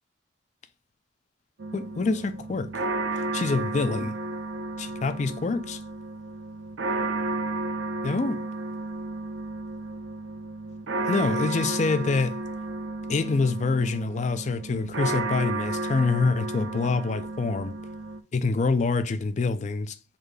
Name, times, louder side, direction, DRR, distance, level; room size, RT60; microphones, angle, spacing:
sound 1, 1.6-18.2, right 2 dB, 90° right, 0.6 m, -32 dB
voice 1, 1.7-2.7 3.1-4.2 4.8-5.8 8.0-8.5 11.0-12.4 13.1-17.7 18.3-19.9, left 4 dB, 40° left, 0.4 m, -26 dB
4.1 x 2.7 x 3.3 m
head